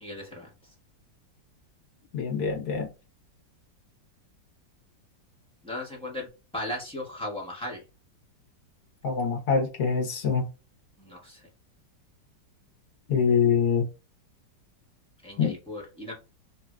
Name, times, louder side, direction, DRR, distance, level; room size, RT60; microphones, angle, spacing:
voice 1, 0.0-0.5 5.6-6.3 6.5-7.8 11.0-11.4 15.2-16.1, left 1 dB, 5° left, 0.8 m, -36 dB
voice 2, 2.1-2.9 9.0-10.4 13.1-13.9 15.4-15.5, left 6 dB, 60° left, 1.4 m, -24 dB
3.2 x 2.7 x 2.2 m
omnidirectional pair, 2.0 m